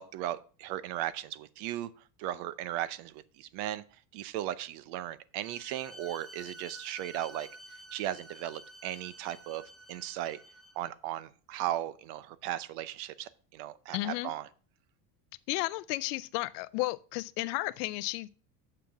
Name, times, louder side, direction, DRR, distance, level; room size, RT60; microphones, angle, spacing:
voice 1, 0.0-1.9 2.2-3.8 4.1-7.5 7.9-9.6 9.9-10.4 10.8-14.5, right 13 dB, 60° right, 0.7 m, -36 dB
Bowed string instrument, 5.4-10.9, right 1 dB, ahead, 0.6 m, -50 dB
voice 2, 13.9-14.3 15.5-18.3, left 20 dB, 85° left, 0.6 m, -33 dB
6.8 x 5.9 x 7.1 m
cardioid pair, 155°, 46 cm